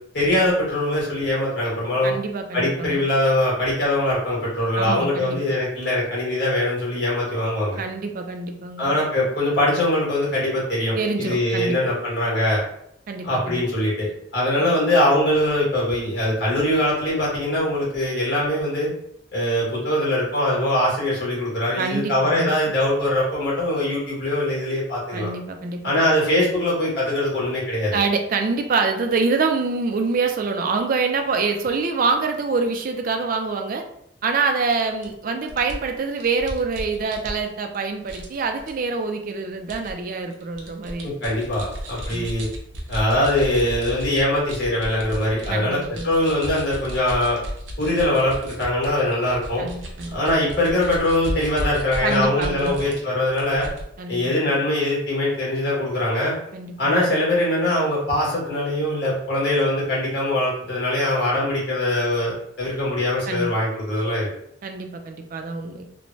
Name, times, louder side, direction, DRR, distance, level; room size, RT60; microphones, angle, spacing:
voice 1, 0.1-2.1 2.5-7.8 8.8-12.6 13.2-18.9 19.3-25.3 25.8-28.0 41.0-42.5 42.9-47.4 47.8-49.7 50.1-53.7 54.1-56.3 56.8-64.3, left 1 dB, 65° left, -6 dB, 1.4 m, -22 dB
voice 2, 2.0-3.0 4.8-5.4 7.8-8.9 11.0-11.8 13.1-13.6 14.6-14.8 21.8-22.5 25.1-25.9 27.9-33.8 34.2-41.1 42.1-42.3 45.5-46.1 49.6-50.2 52.0-52.9 54.0-54.5 56.5-56.7 63.3-63.5 64.6-65.9, right 4 dB, 50° right, 5 dB, 0.4 m, -25 dB
sound 1, 35.0-35.1 35.5-37.8 38.1-38.7 39.7-39.9 40.3-45.5 45.8-53.0 53.3-53.8, equal, 85° right, 0.6 m, -34 dB
3.0 x 2.1 x 2.6 m, 0.74 s
head